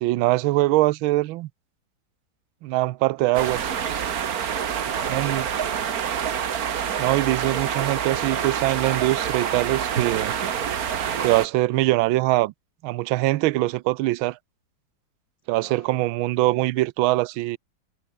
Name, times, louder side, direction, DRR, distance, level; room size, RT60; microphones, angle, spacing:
voice 1, 0.0-1.5 2.6-3.7 5.1-5.4 7.0-10.3 11.2-12.5 12.8-14.4 15.5-17.6, right 18 dB, 85° right, 1.4 m, -22 dB
sound 1, 3.3-11.5, right 8 dB, 50° right, 1.6 m, -27 dB
voice 2, 4.5-6.2 15.5-15.9, equal, 15° right, 2.3 m, -45 dB
omnidirectional pair, 2.2 m